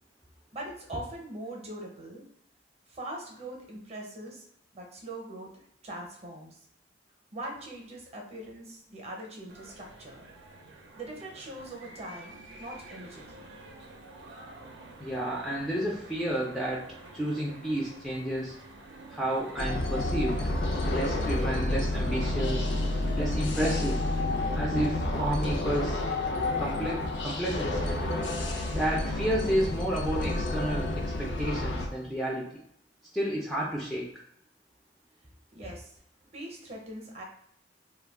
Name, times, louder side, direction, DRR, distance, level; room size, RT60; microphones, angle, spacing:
voice 1, 0.5-2.2 2.9-4.4 4.7-6.6 7.3-10.2 10.9-13.5 35.5-35.9 36.3-37.2, right 1 dB, 35° right, 0 dB, 0.7 m, -42 dB
sound 1, 9.5-29.3, right 2 dB, 75° right, 0.5 m, -47 dB
voice 2, 15.0-16.9 17.1-18.5 19.1-20.4 20.9-22.7 23.2-24.0 24.5-26.0 26.6-28.0 28.7-32.6 33.1-34.1, right 1 dB, ahead, -4 dB, 0.4 m, -31 dB
sound 2, 19.6-31.9, left 2 dB, 75° left, 0.5 m, -30 dB
2.3 x 2.2 x 3.4 m, 0.70 s
head